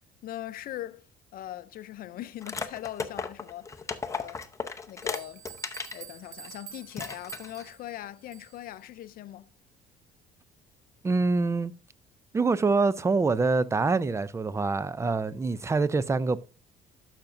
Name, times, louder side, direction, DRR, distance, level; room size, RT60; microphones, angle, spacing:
voice 1, 0.2-1.1 1.3-3.8 4.1-4.5 4.9-5.5 5.9-9.5, left 13 dB, 60° left, 0.5 m, -40 dB
sound 1, 2.4-6.0 6.4-6.6 6.9-7.7, left 4 dB, 15° left, 0.7 m, -35 dB
sound 2, 5.0-8.7, right 10 dB, 50° right, 0.8 m, -47 dB
voice 2, 11.0-11.7 12.3-16.4, right 3 dB, 15° right, 0.4 m, -25 dB
11.5 x 5.9 x 2.5 m
cardioid pair, 110°, 17 cm